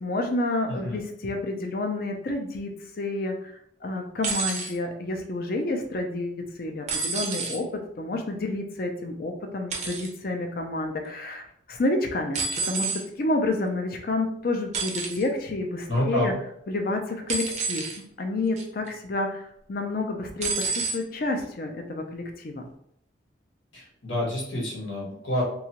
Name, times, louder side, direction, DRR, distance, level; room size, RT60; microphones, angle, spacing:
voice 1, 0.0-2.7 3.0-7.7 8.0-12.9 13.2-16.3 16.7-17.9 18.2-22.7, left 2 dB, 50° left, 3 dB, 0.4 m, -29 dB
sound 1, 4.2-4.7 6.9-7.6 9.7-10.1 12.3-13.0 14.7-15.2 17.3-18.0 18.6-18.9 20.4-21.0 22.0-22.1, right 4 dB, 35° right, 0.4 m, -29 dB
voice 2, 15.9-16.3 23.7-25.4, left 1 dB, 85° left, -3 dB, 1.1 m, -28 dB
2.8 x 2.3 x 2.9 m, 0.72 s
head